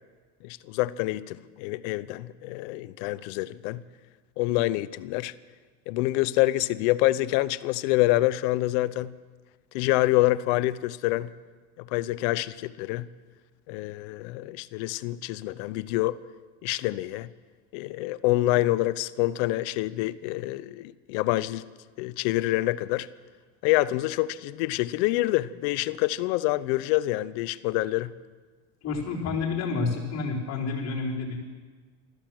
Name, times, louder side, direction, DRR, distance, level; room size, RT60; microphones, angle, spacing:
voice 1, 0.4-3.8 4.4-5.3 5.9-9.1 9.7-11.3 11.8-13.1 13.7-16.2 16.6-17.3 17.7-21.7 22.0-23.1 23.6-28.1, left 17 dB, 75° left, 0.7 m, -26 dB
voice 2, 28.8-31.4, left 4 dB, 45° left, 4.6 m, -29 dB
13.5 x 13.0 x 7.7 m
supercardioid pair, 105°, 35 cm